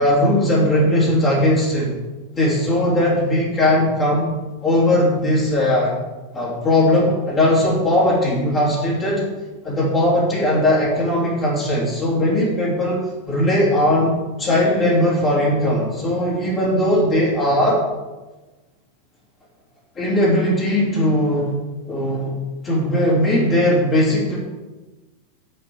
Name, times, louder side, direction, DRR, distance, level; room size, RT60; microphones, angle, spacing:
voice 1, 0.0-2.0 2.4-4.3 4.6-5.9 6.3-9.3 9.6-17.8 19.9-21.5 21.9-22.4 22.6-24.4, left 1 dB, 25° left, -7 dB, 3.4 m, -18 dB
9.6 x 5.5 x 7.4 m, 1.2 s
figure-of-eight pair, 90°, 0 cm